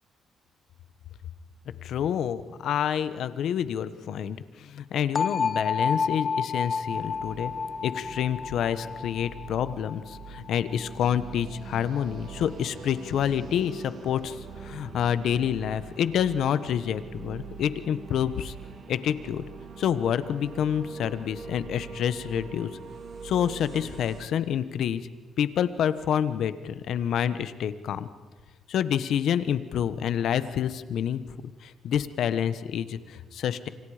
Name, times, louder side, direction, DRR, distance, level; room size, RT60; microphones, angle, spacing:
voice 1, 1.8-7.5 7.8-18.5 18.9-19.4 19.8-22.7 23.2-25.0 25.4-28.1 28.7-33.7, left 9 dB, 70° left, 13 dB, 1.2 m, -28 dB
sound 1, 5.2-11.0, left 5 dB, 40° left, 0.6 m, -30 dB
sound 2, 6.9-24.3, right 5 dB, 60° right, 3.7 m, -43 dB
29.0 x 26.0 x 5.1 m, 1.3 s
cardioid pair, 90°, 0 cm